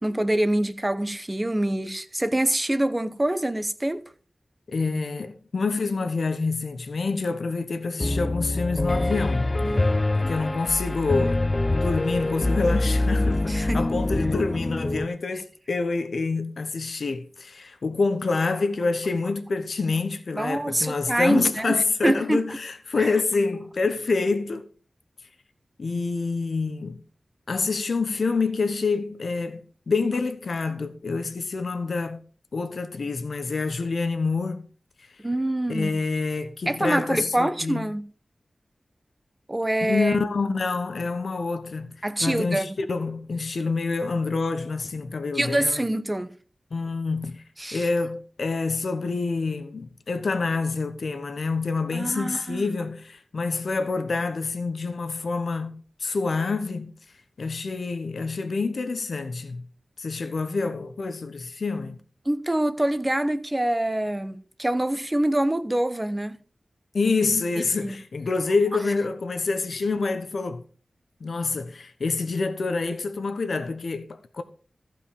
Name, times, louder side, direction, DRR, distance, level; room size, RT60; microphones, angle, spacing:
voice 1, 0.0-4.0 13.5-13.8 20.3-22.6 23.0-23.1 35.2-35.9 36.7-38.0 39.5-40.2 42.0-42.8 45.3-46.3 47.6-47.9 51.9-52.7 62.3-66.4 67.7-68.0, right 1 dB, 20° right, 0.9 m, -25 dB
voice 2, 4.7-9.9 10.1-11.4 11.7-24.6 25.8-27.0 27.5-32.2 32.5-34.7 35.0-35.1 35.7-37.9 39.8-41.9 42.2-45.8 46.7-47.4 47.7-56.9 57.4-59.7 60.0-62.0 66.9-70.6 71.2-74.4, left 4 dB, 75° left, 1.1 m, -27 dB
Piano, 8.0-15.0, left 2 dB, 25° left, 0.6 m, -25 dB
15.0 x 5.4 x 5.3 m
wide cardioid pair, 95°, 0 cm